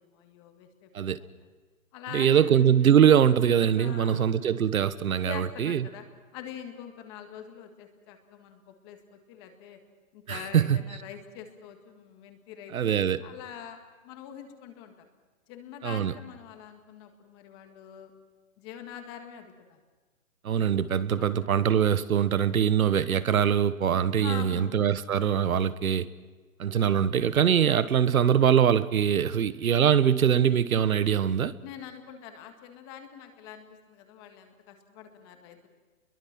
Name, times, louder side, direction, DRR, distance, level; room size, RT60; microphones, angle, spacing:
voice 1, 0.0-0.9 1.2-1.5 1.9-2.5 3.8-4.3 5.2-6.0 6.3-9.8 10.1-15.1 15.5-18.1 18.6-19.8 21.1-21.5 24.2-24.7 25.5-25.7 31.6-35.7, left 9 dB, 20° left, 1.8 m, -44 dB
voice 2, 2.1-5.9 10.3-10.8 12.7-13.2 15.8-16.1 20.4-26.1 26.6-31.5, right 8 dB, 80° right, 1.3 m, -23 dB
29.5 x 22.5 x 6.0 m
hypercardioid pair, 170°, 41 cm